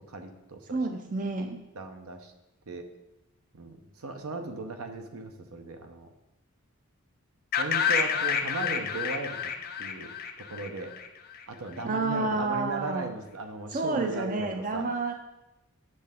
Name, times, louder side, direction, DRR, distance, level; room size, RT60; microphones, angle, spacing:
voice 1, 0.1-0.9 1.4-2.3 2.7-2.9 3.5-6.1 7.6-9.5 9.8-10.9 11.5-14.9, right 3 dB, 75° right, 6 dB, 0.8 m, -37 dB
voice 2, 0.7-1.6 11.8-13.1 13.7-15.1, right 3 dB, 35° right, 5 dB, 0.5 m, -29 dB
sound 1, 7.5-11.4, left 7 dB, 40° left, 0.5 m, -29 dB
7.9 x 6.5 x 3.6 m, 0.94 s
head